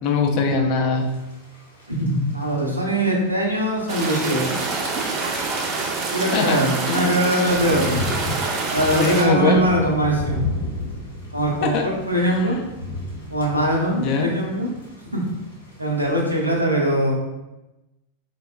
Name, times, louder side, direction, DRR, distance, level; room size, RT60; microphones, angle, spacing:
voice 1, 0.0-1.1 6.3-7.1 9.0-9.7 11.6-11.9 12.2-12.5 14.0-14.3, left 4 dB, 40° left, 2 dB, 0.4 m, -22 dB
Thunder / Rain, 0.9-16.6, left 2 dB, 75° left, 0.8 m, -35 dB
voice 2, 2.0-4.5 6.1-8.0 8.7-10.4 11.3-12.6 13.3-14.7 15.1-15.3 15.8-17.1, right 1 dB, 85° right, -2 dB, 0.6 m, -22 dB
sound 1, 3.9-9.2, right 3 dB, 35° right, 0.5 m, -26 dB
3.9 x 2.1 x 2.2 m, 0.99 s
figure-of-eight pair, 90°, 0 cm